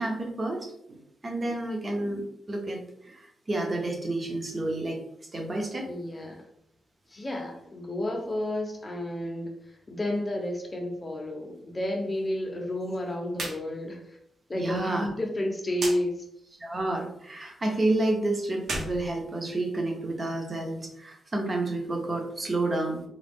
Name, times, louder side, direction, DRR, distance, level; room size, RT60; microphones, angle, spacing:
voice 1, 0.0-5.0 5.3-5.9 14.6-15.1 16.6-23.0, right 2 dB, 25° right, 2 dB, 0.7 m, -30 dB
voice 2, 5.8-6.4 7.1-9.5 9.9-14.2 14.5-16.2, left 1 dB, 20° left, 1 dB, 0.7 m, -31 dB
sound 1, 13.3-13.6 13.9-14.0 15.7-16.0 18.5-19.9, right 2 dB, 65° right, 1.0 m, -34 dB
3.8 x 2.3 x 3.5 m, 0.74 s
wide cardioid pair, 145°, 0 cm